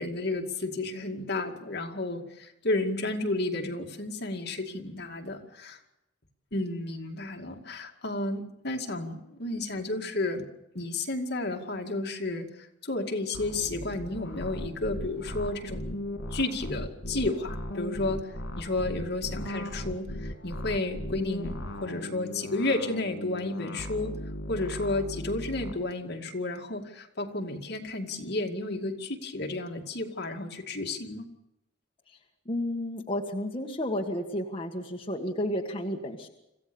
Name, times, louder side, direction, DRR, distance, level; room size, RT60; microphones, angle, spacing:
voice 1, 0.0-5.8 6.5-10.5 10.7-15.9 16.3-24.2 24.5-31.3, left 2 dB, 60° left, 2 dB, 2.3 m, -32 dB
sound 1, 13.3-25.7, left 1 dB, 80° left, 2.7 m, -37 dB
voice 2, 32.4-36.3, left 1 dB, 30° left, 0 dB, 1.7 m, -32 dB
26.5 x 15.5 x 7.0 m, 0.87 s
head